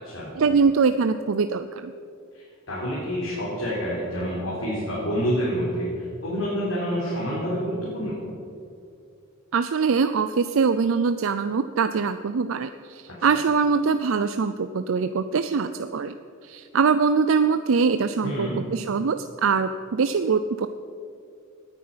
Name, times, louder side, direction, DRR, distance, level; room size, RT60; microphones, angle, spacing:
voice 1, 0.3-1.9 9.5-16.2 16.4-20.7, right 5 dB, 65° right, 11 dB, 0.5 m, -23 dB
voice 2, 2.3-8.2 13.2-13.3 18.2-18.6, equal, 70° left, -7 dB, 4.0 m, -28 dB
18.0 x 9.9 x 5.7 m, 2.4 s
head